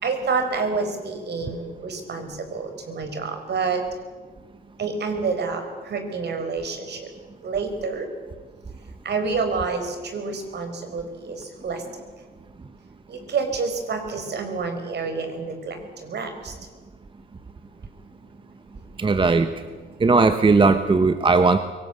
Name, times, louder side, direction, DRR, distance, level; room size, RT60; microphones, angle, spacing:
voice 1, 0.0-3.8 4.8-5.6 5.9-7.0 7.4-8.1 9.0-9.9 10.1-11.4 11.6-11.8 13.3-15.8 16.1-16.5, right 4 dB, 60° right, 6 dB, 4.9 m, -28 dB
voice 2, 19.0-19.5 20.0-21.6, right 4 dB, 25° right, 9 dB, 1.1 m, -17 dB
23.5 x 18.5 x 8.2 m, 1.4 s
cardioid pair, 90°, 20 cm